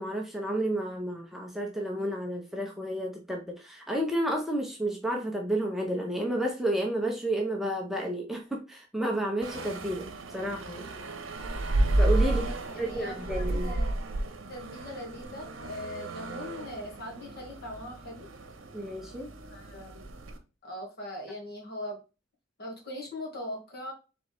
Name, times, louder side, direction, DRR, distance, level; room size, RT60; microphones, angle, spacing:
voice 1, 0.0-10.9 11.9-12.4 12.8-13.7 18.7-19.3, right 1 dB, ahead, 0 dB, 0.7 m, -31 dB
sound 1, 9.4-20.4, right 1 dB, 85° right, 0.8 m, -32 dB
voice 2, 12.2-13.9 14.5-18.3 19.5-20.1 20.6-22.0 22.6-23.9, left 1 dB, 55° left, 0 dB, 1.7 m, -40 dB
3.8 x 3.8 x 3.4 m, 0.31 s
head